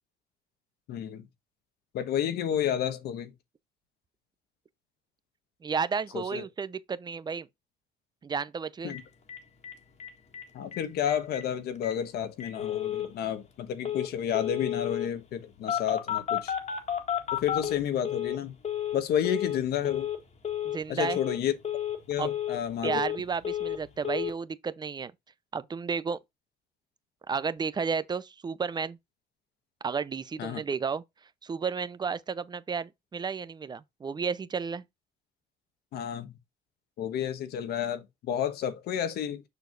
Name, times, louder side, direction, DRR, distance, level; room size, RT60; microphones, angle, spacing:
voice 1, 0.9-1.3 1.9-3.3 6.1-6.4 8.8-9.0 10.5-16.5 17.3-18.6 18.9-20.1 20.9-21.5 22.1-23.0 30.4-30.6 35.9-36.3 37.0-39.4, left 9 dB, 70° left, 1.3 m, -31 dB
voice 2, 5.6-7.5 8.2-8.9 20.6-21.2 22.2-22.3 22.8-25.1 25.5-26.2 27.3-29.0 29.8-31.0 31.4-34.8, right 5 dB, 25° right, 0.6 m, -32 dB
Telephone, 8.9-9.0 9.3-9.4 9.6-9.7 10.0-10.4 10.7-10.8 11.1-11.4 11.8-11.9 12.4-13.1 13.8-14.1 14.3-15.1 15.7-18.4 18.6-19.0 19.2-19.6 19.8-20.2 20.4-20.8 21.0-21.4 21.6-22.0 22.2-23.2 23.4-23.8 24.0-24.3, left 10 dB, 40° left, 1.8 m, -31 dB
6.9 x 6.3 x 2.5 m
cardioid pair, 110°, 17 cm